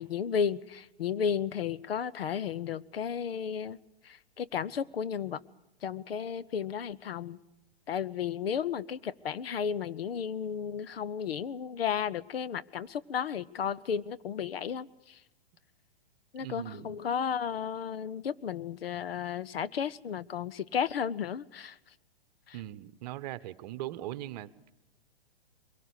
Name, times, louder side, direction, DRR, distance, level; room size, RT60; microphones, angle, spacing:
voice 1, 0.0-3.8 4.1-5.4 5.8-7.4 7.9-14.9 16.3-21.7, left 7 dB, 70° left, 16 dB, 0.9 m, -33 dB
voice 2, 16.4-17.0 22.5-24.7, right 14 dB, 40° right, 15 dB, 1.0 m, -40 dB
23.0 x 18.0 x 8.3 m, 0.88 s
hypercardioid pair, 120°, 30 cm